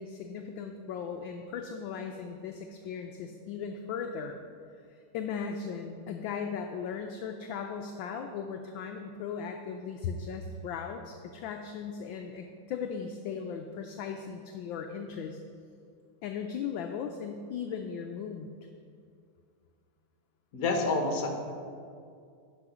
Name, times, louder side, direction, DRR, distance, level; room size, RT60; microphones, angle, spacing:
voice 1, 0.0-4.4 5.1-15.4 16.2-18.5, left 6 dB, 75° left, 4 dB, 1.2 m, -37 dB
voice 2, 20.5-21.3, left 3 dB, 50° left, 3 dB, 1.4 m, -28 dB
11.5 x 5.0 x 5.9 m, 2.3 s
omnidirectional pair, 2.4 m